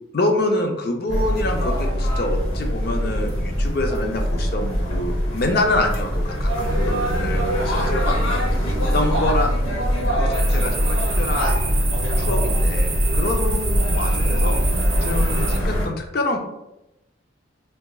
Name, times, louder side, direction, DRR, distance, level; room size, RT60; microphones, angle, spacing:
voice 1, 0.1-11.6 12.2-14.6 15.0-16.4, left 2 dB, 50° left, 3 dB, 0.4 m, -26 dB
sound 1, 1.1-15.9, equal, 90° left, 0.9 m, -22 dB
sound 2, 10.3-15.6, right 4 dB, 25° right, 0.4 m, -29 dB
3.8 x 2.3 x 2.3 m, 0.89 s
head